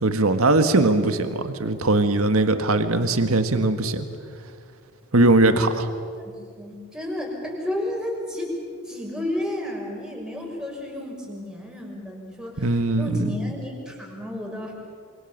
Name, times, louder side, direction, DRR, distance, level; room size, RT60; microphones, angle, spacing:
voice 1, 0.0-4.1 5.1-5.9 12.6-13.3, right 2 dB, 70° right, 8 dB, 1.7 m, -20 dB
voice 2, 6.0-8.5 8.8-14.7, left 1 dB, 5° right, -1 dB, 6.3 m, -32 dB
27.5 x 26.0 x 7.5 m, 2.1 s
head